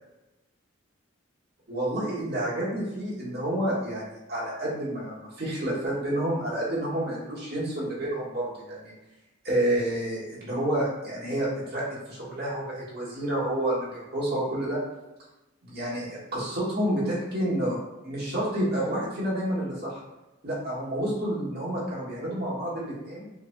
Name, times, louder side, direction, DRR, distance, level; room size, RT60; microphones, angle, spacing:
voice 1, 1.7-8.9 9.4-14.8 15.6-17.8 18.0-20.0 20.4-23.3, right 1 dB, 50° right, -7 dB, 1.5 m, -29 dB
4.6 x 2.7 x 2.2 m, 0.99 s
head